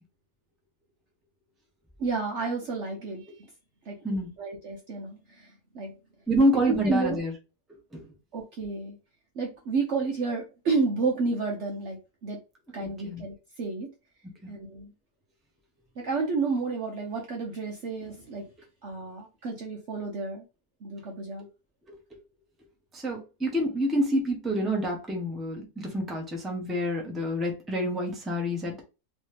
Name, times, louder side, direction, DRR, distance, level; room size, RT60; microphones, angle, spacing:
voice 1, 2.0-3.5 3.8-4.0 4.4-5.9 6.7-7.2 8.3-9.0 9.3-12.4 12.7-13.9 14.5-14.9 16.0-18.5 18.8-20.5 20.8-21.5, right 4 dB, 55° right, 0.9 m, -31 dB
voice 2, 4.0-4.3 6.3-7.3 7.9-8.1 12.7-13.2 14.4-14.5 21.9-22.0 22.9-28.8, equal, ahead, 0.8 m, -28 dB
3.1 x 3.1 x 3.3 m
omnidirectional pair, 1.7 m